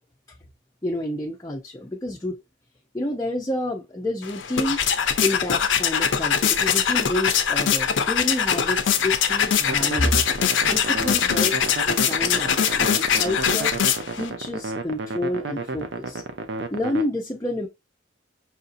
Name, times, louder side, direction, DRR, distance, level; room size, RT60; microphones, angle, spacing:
voice 1, 0.8-2.4 2.9-4.8 5.2-10.2 10.6-13.7 14.2-16.2 16.7-17.7, left 1 dB, 20° left, 0.5 m, -29 dB
sound 1, 4.2-14.3, left 7 dB, 70° left, 0.6 m, -22 dB
sound 2, 9.7-17.0, right 3 dB, 65° right, 0.6 m, -32 dB
5.6 x 2.7 x 2.5 m
head